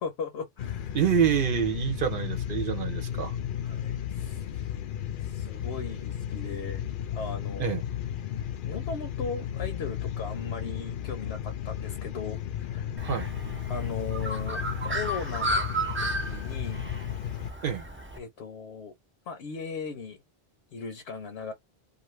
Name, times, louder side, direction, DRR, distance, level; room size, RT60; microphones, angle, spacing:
voice 1, 0.0-1.0 3.7-4.7 5.2-6.9 7.1-7.8 8.6-13.2 13.7-15.7 16.0-16.9 18.2-18.9 19.3-20.2 20.7-21.5, left 5 dB, 85° left, 1.0 m, -38 dB
sound 1, 0.6-17.5, left 10 dB, 60° left, 0.6 m, -34 dB
voice 2, 0.9-3.4 7.6-7.8 13.0-13.3 17.6-17.9, right 8 dB, 60° right, 0.8 m, -27 dB
Bird, 13.0-18.2, right 1 dB, 20° right, 0.4 m, -33 dB
2.5 x 2.5 x 3.1 m
omnidirectional pair, 1.1 m